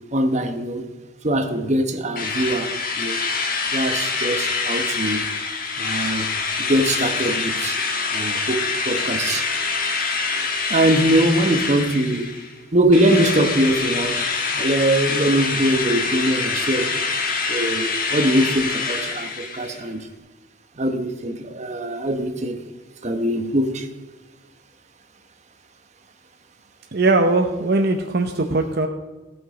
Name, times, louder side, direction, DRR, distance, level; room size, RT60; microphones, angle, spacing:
voice 1, 0.1-0.8 1.2-3.2 3.7-5.2 5.8-7.8 8.1-9.5 10.7-12.3 12.7-14.2 14.5-16.9 17.5-20.1 20.8-22.6 23.0-23.9, right 1 dB, 35° right, 1.1 m, -22 dB
Drill, 2.2-12.5 12.9-19.8, left 4 dB, 45° left, 1.4 m, -25 dB
voice 2, 26.9-28.9, right 2 dB, 55° right, 0.8 m, -20 dB
17.0 x 6.3 x 5.0 m
head